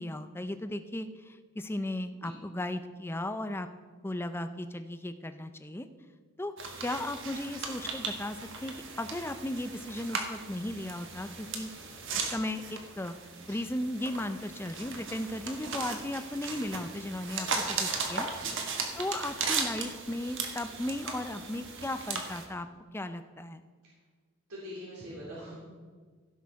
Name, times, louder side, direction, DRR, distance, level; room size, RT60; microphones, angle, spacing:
voice 1, 0.0-3.7 4.0-5.9 6.4-11.7 12.2-13.1 13.5-18.3 19.0-22.7 22.9-23.6, left 1 dB, 10° left, 10 dB, 0.5 m, -36 dB
sound 1, 6.6-22.4, right 4 dB, 55° right, 1.6 m, -37 dB
voice 2, 24.5-25.5, equal, 90° right, -7 dB, 3.3 m, -43 dB
16.0 x 6.5 x 4.7 m, 1.5 s
head